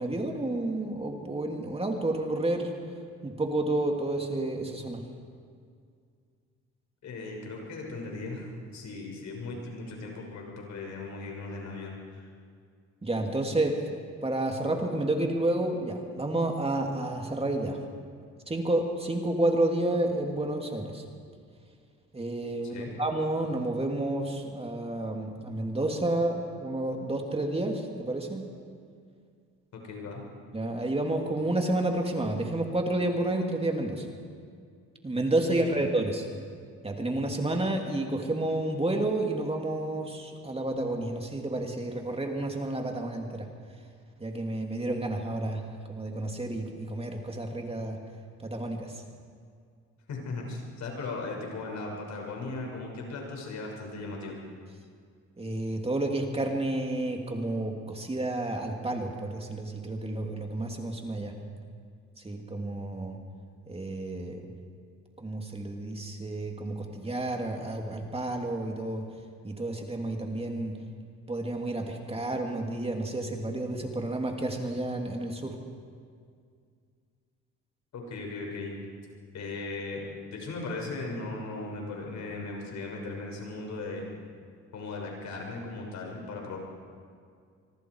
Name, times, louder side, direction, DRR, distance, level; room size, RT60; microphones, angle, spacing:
voice 1, 0.0-2.7 3.2-5.0 13.0-13.8 14.2-17.8 18.5-21.0 22.1-28.4 30.5-34.1 35.0-36.3 36.8-43.5 44.2-45.6 45.9-48.0 48.4-48.9 55.4-61.3 62.2-63.2 63.7-64.4 65.2-69.0 69.4-70.7 71.3-75.6, right 2 dB, 20° right, 2 dB, 2.9 m, -30 dB
voice 2, 7.0-12.2 22.6-22.9 29.7-30.2 35.5-35.6 50.1-54.4 77.9-78.8 79.3-84.0 84.7-86.6, left 3 dB, 70° left, 0 dB, 6.2 m, -37 dB
25.0 x 24.0 x 4.8 m, 2.2 s
cardioid pair, 90°, 30 cm